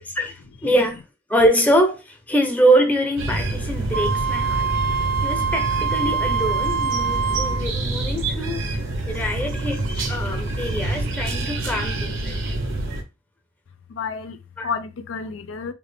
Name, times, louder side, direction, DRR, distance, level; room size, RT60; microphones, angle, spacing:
voice 1, 0.2-1.0 1.3-4.7 5.2-8.7 9.1-12.4 14.6-14.7, right 1 dB, 10° left, 0.7 m, -23 dB
sound 1, 3.2-13.0, right 2 dB, 80° right, 0.8 m, -27 dB
Wind instrument woodwind instrument, 3.9-7.7, right 6 dB, 55° right, 0.3 m, -24 dB
voice 2, 13.9-15.7, left 5 dB, 85° left, 0.5 m, -31 dB
3.4 x 2.4 x 3.4 m
head